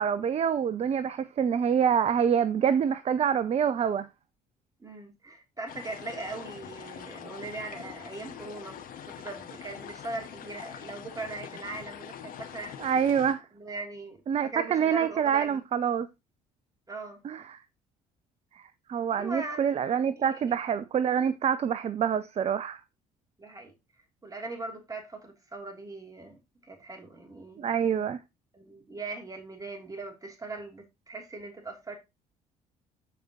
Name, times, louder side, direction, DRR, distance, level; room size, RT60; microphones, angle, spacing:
voice 1, 0.0-4.1 12.8-13.4 14.3-16.1 17.2-17.6 18.9-22.8 27.6-28.2, right 8 dB, 35° right, 0.6 m, -26 dB
voice 2, 4.8-8.8 9.1-12.9 13.5-14.2 14.4-15.6 16.9-17.2 19.2-19.7 20.2-20.4 23.4-23.7 24.2-27.6 28.5-31.9, right 3 dB, 20° right, 3.1 m, -40 dB
sound 1, 5.7-13.3, left 8 dB, 50° left, 1.7 m, -44 dB
14.0 x 4.9 x 3.0 m
figure-of-eight pair, 50°, 19 cm